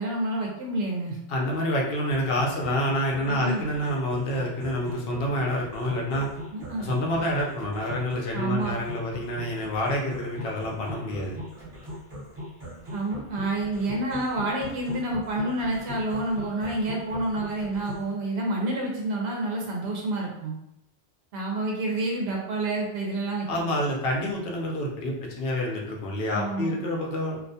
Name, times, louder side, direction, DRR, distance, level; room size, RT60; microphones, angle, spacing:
voice 1, 0.0-1.2 3.3-3.6 6.5-6.9 8.3-8.8 12.9-20.6 21.3-23.8 26.3-26.8, right 2 dB, 75° right, -1 dB, 0.8 m, -29 dB
voice 2, 1.3-6.3 6.8-11.3 23.5-27.4, left 1 dB, 70° left, -1 dB, 0.8 m, -28 dB
sound 1, 2.1-18.1, equal, 35° right, 0.7 m, -40 dB
2.4 x 2.2 x 2.6 m, 0.77 s
omnidirectional pair, 1.1 m